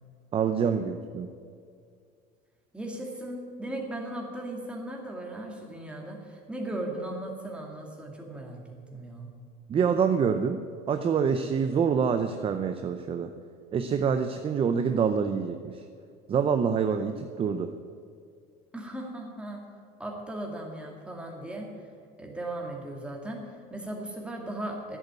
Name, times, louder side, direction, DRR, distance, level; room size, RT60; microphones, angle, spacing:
voice 1, 0.3-1.3 9.7-10.6 10.9-13.3 13.7-15.7 16.3-17.7, right 6 dB, 30° right, 7 dB, 0.6 m, -26 dB
voice 2, 2.7-8.6 8.9-9.3 18.7-19.7 20.0-21.7 22.2-25.0, right 1 dB, 5° right, 0 dB, 2.3 m, -37 dB
11.0 x 8.2 x 9.5 m, 2.2 s
cardioid pair, 140°, 20 cm